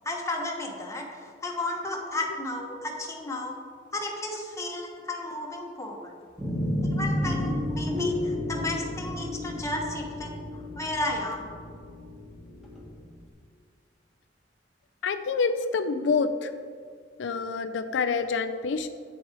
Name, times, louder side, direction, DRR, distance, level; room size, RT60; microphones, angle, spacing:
voice 1, 0.0-3.6 3.9-6.1 6.9-11.5, left 2 dB, 15° left, 0 dB, 1.2 m, -33 dB
sound 1, 6.4-12.9, left 1 dB, ahead, 1.7 m, -31 dB
voice 2, 15.0-16.5 17.2-18.9, left 4 dB, 85° left, 9 dB, 0.4 m, -27 dB
8.8 x 7.1 x 4.6 m, 2.1 s
head